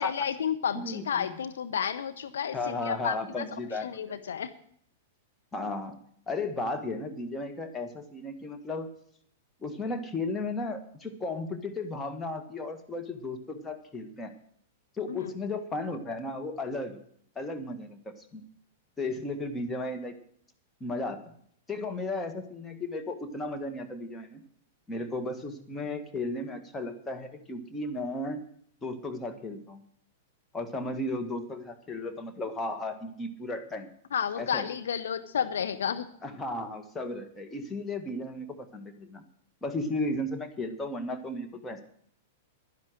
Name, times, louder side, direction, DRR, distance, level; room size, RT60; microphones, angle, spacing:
voice 1, 0.0-3.4 3.8-4.5 15.1-15.3 34.1-36.1, left 8 dB, 65° left, 10 dB, 0.7 m, -31 dB
voice 2, 0.7-1.3 2.5-4.0 5.5-6.0 6.3-8.9 9.6-14.3 15.0-17.0 17.3-18.4 19.0-20.1 20.8-21.2 21.7-24.4 24.9-28.4 28.8-29.8 30.5-33.9 34.4-34.7 36.2-39.2 39.6-41.8, left 2 dB, 15° left, 5 dB, 1.5 m, -35 dB
11.5 x 10.5 x 6.4 m, 0.66 s
figure-of-eight pair, 100°, 0 cm